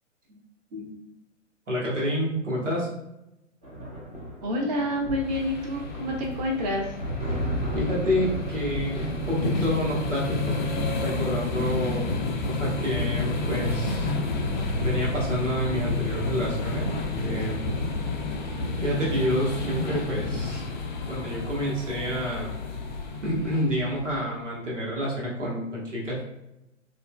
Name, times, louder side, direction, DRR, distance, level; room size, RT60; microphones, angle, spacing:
voice 1, 1.7-2.9 7.7-10.6 11.0-14.2 14.8-16.9 17.2-17.6 18.8-20.6 21.1-22.5 23.2-26.2, equal, 75° right, -4 dB, 1.3 m, -29 dB
sound 1, 3.6-19.4 20.5-20.8 21.1-21.8, equal, 20° right, 1.1 m, -37 dB
voice 2, 4.4-6.9, left 1 dB, 35° right, 0 dB, 0.6 m, -28 dB
sound 2, 5.2-24.2, left 3 dB, 40° left, 0.5 m, -30 dB
4.1 x 2.6 x 2.2 m, 0.88 s
figure-of-eight pair, 115°, 38 cm